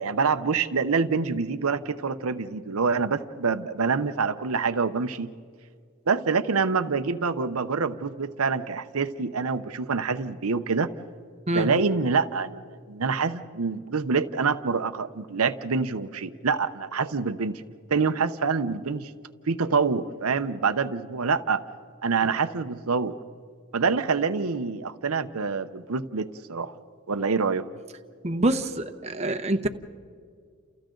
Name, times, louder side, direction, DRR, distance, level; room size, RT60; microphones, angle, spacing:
voice 1, 0.0-5.3 6.1-10.9 11.5-17.6 17.9-19.1 19.5-21.6 22.0-23.2 23.7-26.7 27.1-27.6, right 5 dB, 90° right, 9 dB, 0.8 m, -26 dB
voice 2, 28.2-29.7, right 1 dB, 30° right, 6 dB, 0.9 m, -25 dB
29.5 x 29.0 x 3.9 m, 2.1 s
head